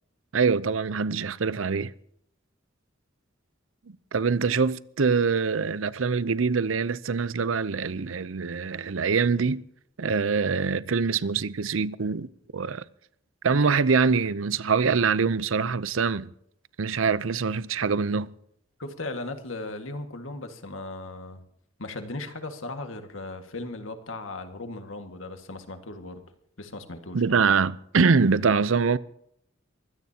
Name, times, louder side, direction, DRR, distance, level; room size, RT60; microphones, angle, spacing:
voice 1, 0.3-1.9 3.9-9.6 10.0-12.3 12.5-12.8 13.4-16.3 16.8-18.3 27.1-29.0, right 5 dB, 85° right, 0.7 m, -24 dB
voice 2, 18.8-21.4 21.8-26.2 26.6-27.4, left 2 dB, 85° left, 1.9 m, -37 dB
23.5 x 16.5 x 2.9 m
head